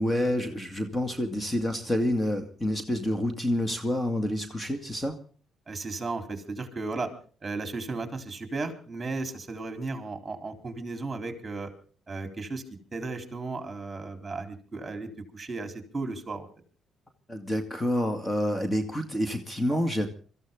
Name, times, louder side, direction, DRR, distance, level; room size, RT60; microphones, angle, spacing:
voice 1, 0.0-5.2 17.3-20.1, left 1 dB, 15° left, 6 dB, 2.1 m, -28 dB
voice 2, 5.7-7.1 7.4-11.7 12.1-12.6 12.9-16.5, right 3 dB, 25° right, 6 dB, 3.9 m, -35 dB
24.5 x 14.5 x 3.8 m, 0.40 s
cardioid pair, 90°, 0 cm